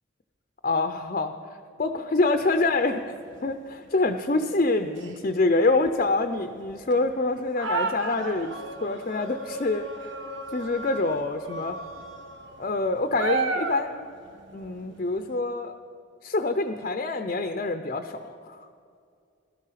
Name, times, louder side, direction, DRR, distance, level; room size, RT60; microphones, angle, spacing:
voice 1, 0.6-1.3 1.8-3.0 3.4-8.5 8.8-10.1 10.5-11.8 12.6-14.1 14.5-15.7 16.2-18.6, left 3 dB, 40° left, 7 dB, 0.6 m, -26 dB
sound 1, 2.4-3.6 3.8-4.3 5.0-5.2 5.9-6.0 6.3-15.4, right 3 dB, 60° right, 1.3 m, -34 dB
18.0 x 13.0 x 5.8 m, 2.3 s
head